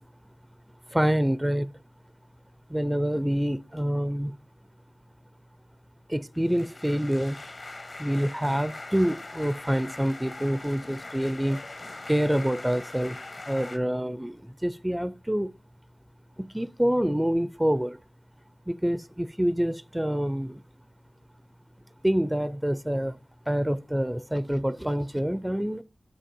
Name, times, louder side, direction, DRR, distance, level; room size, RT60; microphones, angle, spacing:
voice 1, 0.9-1.7 2.7-4.3 6.1-7.4 8.0-11.6 12.1-13.2 13.5-15.5 16.4-18.0 18.7-20.6 22.0-23.2 23.5-25.8, equal, 10° right, 0.4 m, -26 dB
sound 1, 6.3-13.8, left 2 dB, 55° left, 1.0 m, -42 dB
7.4 x 6.4 x 2.7 m
wide cardioid pair, 80°, 0 cm